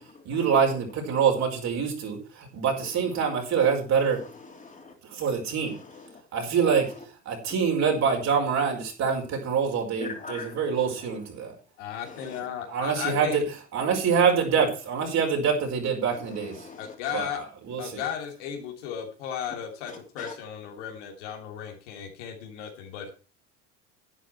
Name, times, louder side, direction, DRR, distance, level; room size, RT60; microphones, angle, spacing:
voice 1, 0.2-4.2 5.1-5.7 6.3-6.9 7.2-11.6 12.7-13.4 13.7-16.6 17.1-18.0, right 6 dB, 50° right, 1 dB, 5.0 m, -25 dB
voice 2, 4.6-4.9 10.0-10.5 16.6-16.9, left 3 dB, 20° left, 3 dB, 3.4 m, -39 dB
voice 3, 11.8-13.4 16.8-17.4 17.8-23.1, left 8 dB, 75° left, 2 dB, 2.9 m, -35 dB
11.0 x 9.1 x 4.5 m, 0.36 s
hypercardioid pair, 85°, 36 cm